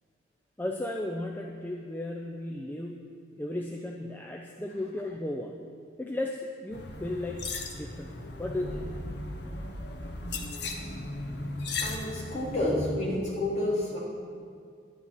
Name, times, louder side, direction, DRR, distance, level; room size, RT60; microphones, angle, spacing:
voice 1, 0.6-5.6 6.0-8.9, left 1 dB, 10° left, 1 dB, 0.5 m, -35 dB
sound 1, 6.7-12.8, left 2 dB, 60° left, 1.1 m, -36 dB
voice 2, 11.8-14.0, left 1 dB, 35° left, -6 dB, 3.4 m, -29 dB
11.5 x 9.9 x 5.8 m, 2.3 s
head